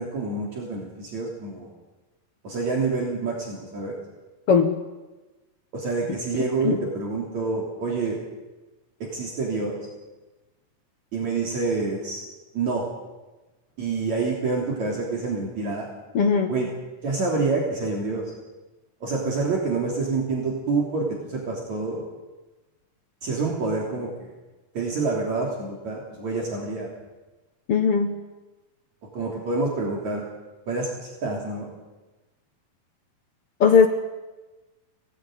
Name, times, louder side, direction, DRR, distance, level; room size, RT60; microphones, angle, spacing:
voice 1, 0.0-1.7 2.4-4.0 5.7-8.2 9.1-9.8 11.1-12.2 12.5-12.8 13.8-15.9 16.5-16.7 17.0-18.2 19.0-22.0 23.2-24.3 24.7-26.9 29.1-30.2 30.7-30.9 31.2-31.7, right 3 dB, 55° right, -2 dB, 4.5 m, -27 dB
voice 2, 16.1-16.5 27.7-28.2 33.6-33.9, left 6 dB, 55° left, 5 dB, 1.8 m, -18 dB
24.5 x 18.5 x 9.2 m, 1.2 s
omnidirectional pair, 3.8 m